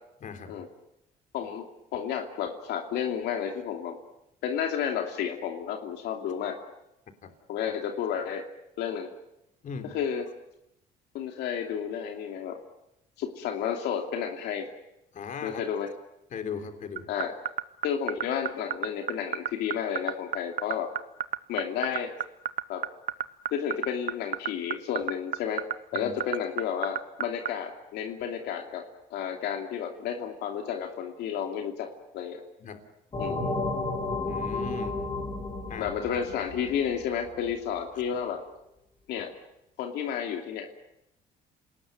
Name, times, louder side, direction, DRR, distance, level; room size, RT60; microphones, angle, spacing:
voice 1, 0.2-0.7 7.2-7.3 9.6-10.0 15.1-15.6 16.3-17.1 25.9-26.1 32.6-32.8 34.3-35.0 35.7-35.9, left 6 dB, 50° left, 7 dB, 3.5 m, -38 dB
voice 2, 1.3-1.7 1.9-4.0 4.4-6.6 7.5-8.4 8.8-9.1 9.9-10.2 11.1-12.6 13.2-14.7 15.4-15.9 17.1-17.3 17.8-20.9 21.5-22.1 22.7-22.8 23.5-25.6 25.9-28.8 29.1-31.9 32.1-32.4 33.2-33.4 35.8-38.4 39.1-39.3 39.8-40.9, left 8 dB, 80° left, 3 dB, 2.7 m, -31 dB
sound 1, 17.0-27.5, right 10 dB, 55° right, 1.1 m, -28 dB
sound 2, 33.1-37.5, left 2 dB, 30° left, 6.6 m, -32 dB
28.5 x 19.5 x 9.3 m, 0.86 s
cardioid pair, 110°, 17 cm